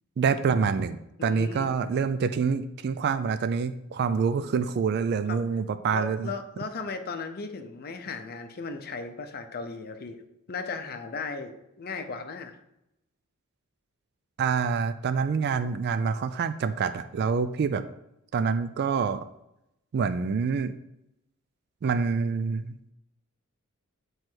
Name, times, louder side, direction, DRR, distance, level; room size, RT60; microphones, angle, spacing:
voice 1, 0.2-6.3 14.4-17.8 18.3-19.2 19.9-20.7 21.8-22.7, right 5 dB, 50° right, 11 dB, 0.3 m, -26 dB
voice 2, 1.2-1.7 5.3-5.4 5.9-10.2 10.5-12.5, left 4 dB, 45° left, 7 dB, 0.6 m, -36 dB
7.6 x 3.2 x 4.5 m, 0.84 s
head